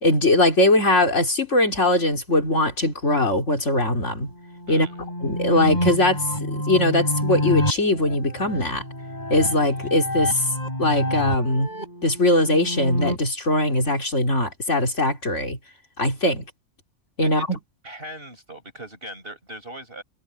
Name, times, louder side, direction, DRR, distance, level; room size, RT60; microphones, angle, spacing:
voice 1, 0.0-4.3 4.7-4.9 5.2-8.8 9.3-10.4 10.8-11.7 12.0-15.6 16.0-16.5 17.2-17.5, left 1 dB, 80° left, 4.1 m, -21 dB
sound 1, 4.3-13.2, left 1 dB, 35° left, 8.3 m, -28 dB
voice 2, 4.7-5.0 17.2-17.6 17.8-20.0, right 1 dB, 50° right, 7.2 m, -39 dB
omnidirectional pair, 1.2 m